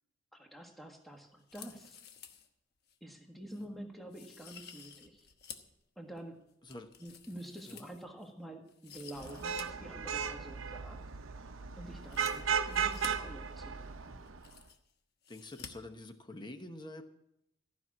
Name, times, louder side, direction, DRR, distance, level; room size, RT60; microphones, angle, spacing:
voice 1, 0.3-2.0 3.0-5.3 5.9-6.4 7.0-11.0 11.3-14.2, right 1 dB, ahead, 2 dB, 1.6 m, -48 dB
sound 1, 1.4-2.5 2.9-3.0 3.5-3.7 4.1-5.8 6.2-8.3 8.7-9.6 9.9-10.0 12.0-13.1 13.9-14.0 14.2-14.9 15.2-15.7 16.0-16.1, left 7 dB, 50° left, 1.1 m, -51 dB
Vehicle horn car horn honking / Traffic noise roadway noise, 9.2-14.5, right 7 dB, 70° right, 0.8 m, -36 dB
voice 2, 15.3-17.0, left 1 dB, 20° left, 7 dB, 1.0 m, -47 dB
15.0 x 6.2 x 8.5 m, 0.80 s
head